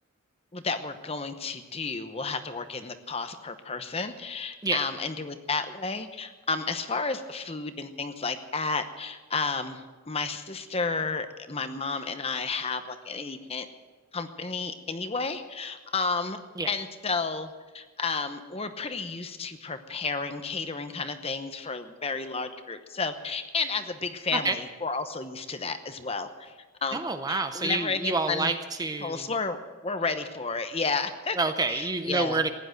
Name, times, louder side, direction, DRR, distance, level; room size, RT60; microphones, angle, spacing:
voice 1, 0.5-13.7 14.1-16.4 16.7-26.5 26.8-27.0 27.3-28.5 29.0-31.4 31.7-32.4, left 4 dB, 25° left, 9 dB, 0.9 m, -32 dB
voice 2, 26.9-29.3 31.4-32.5, right 3 dB, 15° right, 8 dB, 0.6 m, -28 dB
15.5 x 10.5 x 7.8 m, 1.3 s
head